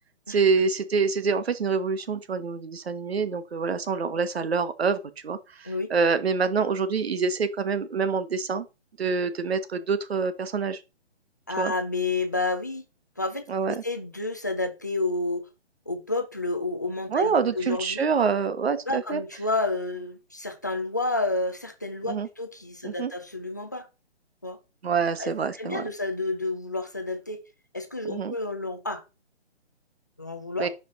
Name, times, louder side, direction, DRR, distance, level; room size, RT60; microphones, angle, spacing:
voice 1, 0.3-8.6 9.0-10.8 11.6-11.7 13.5-13.7 17.1-19.2 22.1-22.3 22.8-23.1 24.8-25.9 28.1-28.3 30.6-30.7, right 5 dB, 65° right, 1.4 m, -26 dB
voice 2, 11.5-12.8 13.2-15.5 15.9-18.0 18.9-23.9 24.4-24.6 25.2-27.4 27.7-29.0 30.2-30.7, left 2 dB, 15° left, 0.4 m, -30 dB
11.0 x 5.1 x 3.7 m
hypercardioid pair, 160°, 34 cm